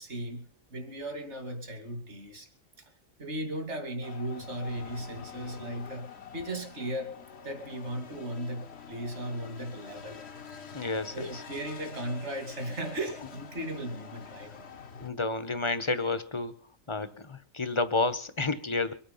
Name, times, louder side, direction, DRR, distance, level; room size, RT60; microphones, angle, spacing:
voice 1, 0.0-2.5 3.2-7.1 7.4-10.2 11.1-14.5, right 1 dB, 55° right, 6 dB, 3.2 m, -37 dB
sound 1, 4.0-15.1, left 6 dB, 55° left, 1.4 m, -46 dB
voice 2, 10.7-11.4 15.0-16.6 16.9-18.9, left 3 dB, 25° left, 13 dB, 1.1 m, -30 dB
24.0 x 8.9 x 5.7 m, 0.41 s
omnidirectional pair, 1.4 m